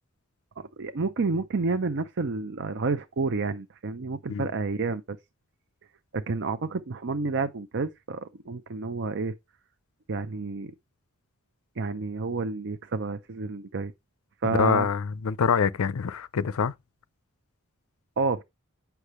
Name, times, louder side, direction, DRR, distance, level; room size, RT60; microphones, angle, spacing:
voice 1, 0.6-5.2 6.1-9.3 10.1-10.7 11.8-13.9 14.4-14.9 18.2-18.4, right 4 dB, 55° right, 0.6 m, -30 dB
voice 2, 14.4-16.7, left 6 dB, 70° left, 0.5 m, -25 dB
8.2 x 5.8 x 3.1 m
head